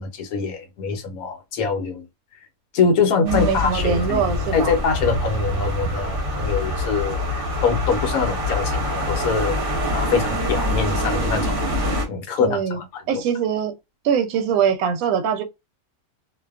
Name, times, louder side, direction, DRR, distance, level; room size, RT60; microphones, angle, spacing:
voice 1, 0.0-2.1 2.7-4.2 4.5-11.7 12.1-13.2, left 5 dB, 70° left, 1.1 m, -24 dB
voice 2, 3.2-4.7 12.4-12.8 13.1-13.7 14.0-15.4, right 7 dB, 75° right, 1.0 m, -22 dB
sound 1, 3.3-12.1, left 1 dB, 45° right, 0.9 m, -25 dB
2.6 x 2.2 x 2.3 m
omnidirectional pair, 1.6 m